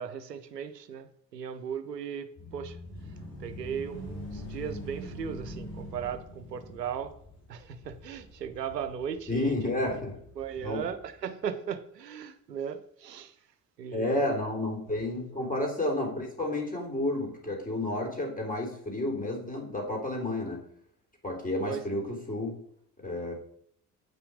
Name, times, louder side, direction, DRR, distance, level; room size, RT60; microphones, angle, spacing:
voice 1, 0.0-2.8 3.4-7.1 7.5-9.6 10.4-13.3 13.8-14.2 21.6-21.9, right 8 dB, 90° right, 0.6 m, -37 dB
sound 1, 2.4-11.2, left 1 dB, 80° left, 4.0 m, -44 dB
voice 2, 9.3-10.1 10.6-10.8 13.9-20.6 21.2-22.5 23.0-23.3, left 1 dB, 15° left, 3.6 m, -31 dB
8.7 x 5.8 x 4.8 m
figure-of-eight pair, 50°, 48 cm